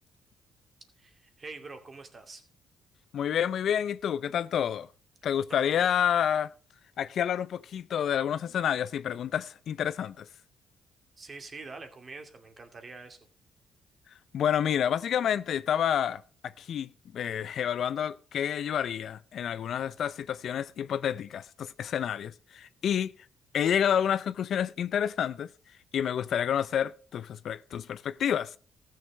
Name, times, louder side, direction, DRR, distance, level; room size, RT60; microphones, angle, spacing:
voice 1, 1.0-2.4 5.5-5.9 11.2-13.2, right 3 dB, 35° right, 2.4 m, -45 dB
voice 2, 3.1-4.9 5.2-6.5 7.0-10.3 14.3-16.2 16.6-23.1 23.5-25.5 25.9-28.6, left 9 dB, 65° left, 0.5 m, -29 dB
14.5 x 6.6 x 5.1 m
cardioid pair, 90°, 0 cm